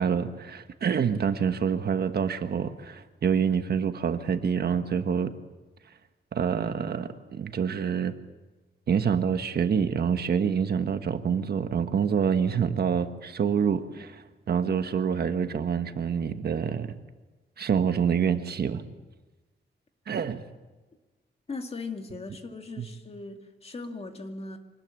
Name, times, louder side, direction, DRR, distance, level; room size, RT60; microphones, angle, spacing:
voice 1, 0.0-5.3 6.3-8.1 8.9-17.0 17.6-18.8 20.1-20.4 22.8-22.9, right 7 dB, 60° right, 8 dB, 1.3 m, -27 dB
voice 2, 21.5-24.6, left 3 dB, 30° left, 5 dB, 2.2 m, -38 dB
25.0 x 19.5 x 7.7 m, 1.2 s
wide cardioid pair, 150°, 19 cm